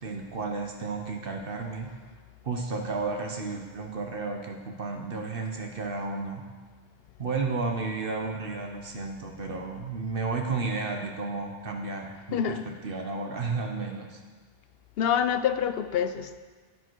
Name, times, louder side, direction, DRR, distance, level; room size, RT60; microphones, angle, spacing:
voice 1, 0.0-1.9 2.4-6.4 7.2-14.2, right 4 dB, 65° right, 3 dB, 1.2 m, -32 dB
voice 2, 12.3-12.7 15.0-16.4, left 8 dB, 70° left, 11 dB, 0.8 m, -26 dB
10.5 x 9.3 x 4.6 m, 1.4 s
omnidirectional pair, 1.0 m